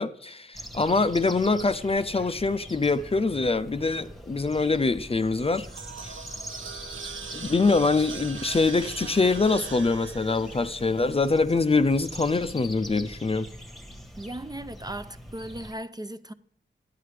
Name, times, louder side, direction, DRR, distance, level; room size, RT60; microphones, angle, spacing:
voice 1, 0.0-5.7 6.0-6.2 7.3-13.5, left 3 dB, 30° left, 0.5 m, -24 dB
sound 1, 0.5-15.7, equal, ahead, 1.1 m, -43 dB
sound 2, 5.4-11.7, right 6 dB, 85° right, 0.8 m, -41 dB
voice 2, 14.2-16.3, right 1 dB, 20° right, 0.4 m, -37 dB
11.0 x 9.5 x 3.3 m
wide cardioid pair, 95°, 19 cm